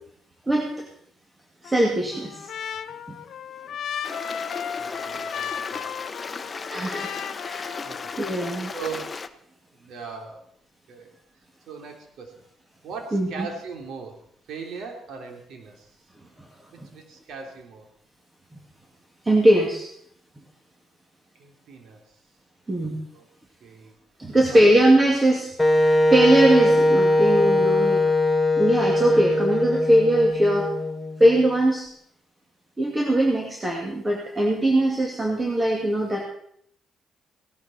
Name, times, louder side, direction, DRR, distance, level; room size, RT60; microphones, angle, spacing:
voice 1, 0.5-0.8 1.6-2.4 6.7-7.2 7.4-7.8 8.2-8.7 13.1-13.5 16.8-16.9 19.2-19.9 22.7-23.0 24.2-25.5 25.7-28.0 28.6-30.7 31.2-31.9 32.8-36.2, right 1 dB, 20° right, 0 dB, 2.5 m, -21 dB
Trumpet, 1.6-8.4, left 8 dB, 70° left, 0.9 m, -35 dB
Stream, 4.0-9.3, left 4 dB, 30° left, 1.0 m, -36 dB
voice 2, 4.7-5.9 7.8-8.1 8.7-9.1 9.7-10.4 10.9-11.1 11.7-12.4 12.8-14.2 14.5-15.9 16.7-17.9 21.3-22.2 23.1-23.3 23.6-24.0 24.5-24.7, right 5 dB, 75° right, 3 dB, 3.2 m, -39 dB
Wind instrument woodwind instrument, 25.6-31.4, left 1 dB, 10° left, 1.3 m, -20 dB
17.0 x 12.0 x 4.4 m, 0.67 s
cardioid pair, 90°, 0 cm